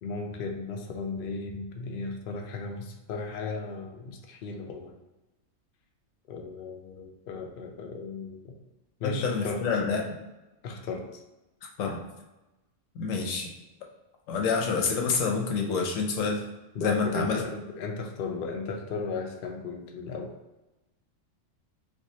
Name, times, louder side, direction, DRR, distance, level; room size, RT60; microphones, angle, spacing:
voice 1, 0.0-4.9 6.3-8.5 9.0-9.6 10.6-11.2 16.7-20.3, left 4 dB, 60° left, 2 dB, 0.6 m, -35 dB
voice 2, 9.0-10.1 11.8-12.0 12.9-13.5 14.3-16.4 16.8-17.4, left 5 dB, 80° left, 1 dB, 1.0 m, -27 dB
4.5 x 2.3 x 2.7 m, 1.0 s
omnidirectional pair, 1.3 m